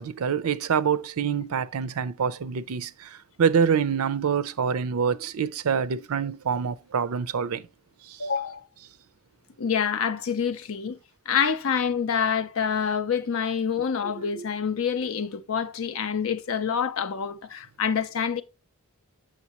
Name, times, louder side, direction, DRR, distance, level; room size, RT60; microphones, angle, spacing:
voice 1, 0.0-7.7 8.1-8.3 14.0-14.4, right 7 dB, 80° right, 0.5 m, -26 dB
voice 2, 8.2-8.6 9.6-11.0 11.3-18.4, left 7 dB, 65° left, 0.6 m, -27 dB
7.3 x 6.3 x 2.9 m
head